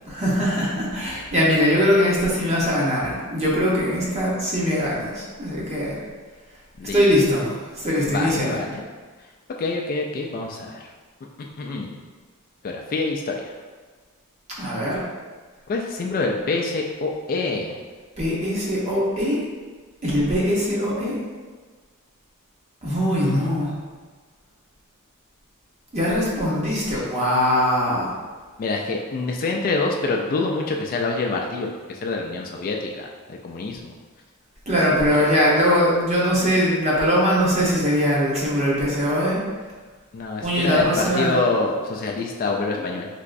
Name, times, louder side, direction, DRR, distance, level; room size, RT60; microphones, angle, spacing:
voice 1, 0.1-6.0 6.9-7.5 7.7-8.6 14.6-15.0 18.2-19.4 20.0-21.2 22.8-23.7 25.9-28.1 34.7-39.4 40.4-41.4, equal, 30° right, -5 dB, 0.8 m, -21 dB
voice 2, 6.8-7.1 7.4-7.5 8.1-8.8 9.6-10.9 11.4-12.0 12.6-13.6 15.7-17.8 23.2-23.5 28.6-33.9 40.1-43.1, left 3 dB, 40° left, 0 dB, 0.3 m, -26 dB
3.4 x 3.0 x 2.5 m, 1.4 s
head